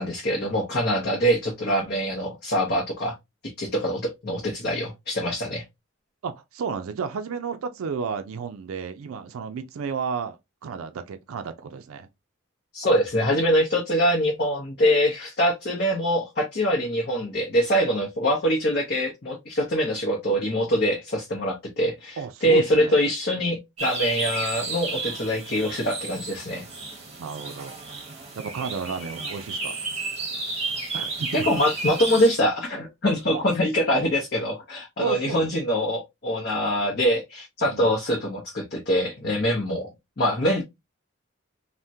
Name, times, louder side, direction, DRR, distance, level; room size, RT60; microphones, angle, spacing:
voice 1, 0.0-3.1 3.4-5.6 12.7-26.6 31.3-39.9 40.2-40.6, equal, 50° left, 0.7 m, -24 dB
voice 2, 6.2-12.1 22.2-23.0 27.2-27.8 28.3-29.8 30.9-31.5 33.3-33.4 33.8-34.0 35.0-35.5 37.7-37.9, right 6 dB, 85° right, 0.4 m, -32 dB
sound 1, 23.8-32.3, right 3 dB, 30° right, 0.7 m, -32 dB
3.4 x 2.1 x 2.6 m
head